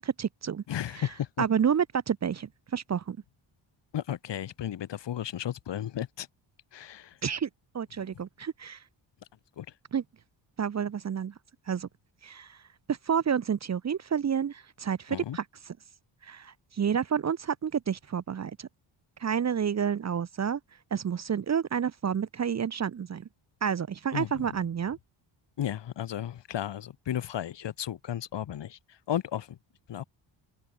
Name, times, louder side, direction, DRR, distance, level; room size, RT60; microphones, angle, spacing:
voice 1, 0.0-0.6 1.4-3.2 7.2-7.5 7.7-8.8 9.9-10.0 10.6-11.3 11.7-11.9 12.2-12.6 12.9-15.4 16.2-18.7 19.2-20.6 20.9-23.3 23.6-25.0, right 7 dB, 35° right, 0.8 m, -29 dB
voice 2, 0.7-1.4 3.9-6.3 6.7-7.2 8.1-8.2 9.6-9.7 15.1-15.4 24.1-24.6 25.6-29.6 29.9-30.0, left 10 dB, 60° left, 1.6 m, -34 dB
wide cardioid pair, 140°, 48 cm